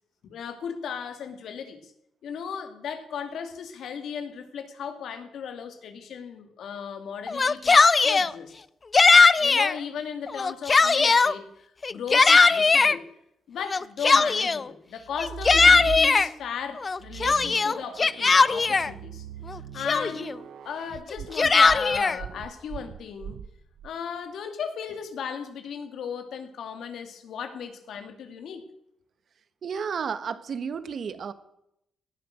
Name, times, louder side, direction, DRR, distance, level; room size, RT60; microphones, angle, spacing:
voice 1, 0.2-1.9 2.2-8.5 9.4-11.5 11.9-13.1 13.5-19.3 19.7-20.3 20.6-23.4 23.8-28.7, left 7 dB, 75° left, 8 dB, 2.2 m, -36 dB
Yell, 7.3-8.3 8.9-9.7 10.3-11.3 11.8-13.0 13.7-14.7 15.2-16.3 16.8-18.9 19.5-19.6 19.9-20.3 21.1-22.2, left 4 dB, 35° left, 0.5 m, -19 dB
sound 1, 15.1-16.5 17.0-23.9, right 8 dB, 75° right, 0.9 m, -39 dB
voice 2, 29.6-31.3, right 6 dB, 55° right, 13 dB, 1.3 m, -32 dB
18.0 x 11.0 x 6.3 m, 0.79 s
cardioid pair, 85°, 0 cm